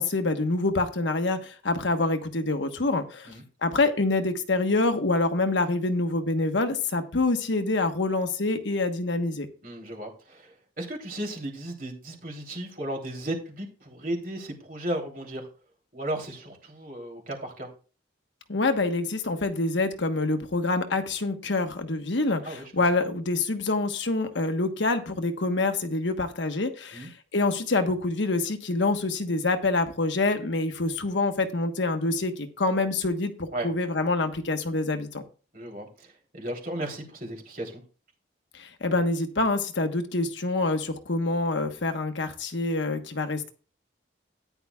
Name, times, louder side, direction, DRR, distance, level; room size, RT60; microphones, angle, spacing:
voice 1, 0.0-3.3 3.6-9.5 18.5-35.2 38.5-43.5, left 2 dB, 75° left, 6 dB, 1.2 m, -26 dB
voice 2, 9.6-15.5 15.9-17.7 22.4-22.7 23.0-23.1 26.9-27.1 33.5-33.7 35.5-37.8, right 1 dB, 45° right, 1 dB, 3.2 m, -35 dB
13.5 x 10.0 x 2.4 m, 0.37 s
head